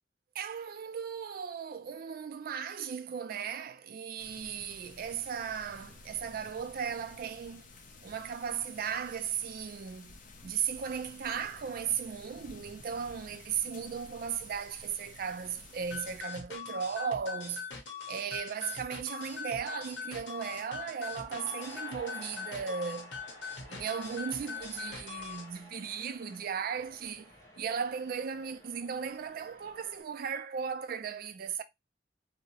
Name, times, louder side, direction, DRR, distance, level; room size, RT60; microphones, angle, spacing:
voice 1, 0.3-7.7 8.0-10.1 10.4-17.7 18.1-23.1 23.7-31.6, right 7 dB, 55° right, 0.3 m, -36 dB
sound 1, 4.2-16.2, left 3 dB, 45° left, 0.5 m, -53 dB
sound 2, 15.9-25.5, left 6 dB, 80° left, 0.7 m, -42 dB
sound 3, 20.0-30.0, equal, 20° left, 1.1 m, -52 dB
2.7 x 2.0 x 2.8 m
head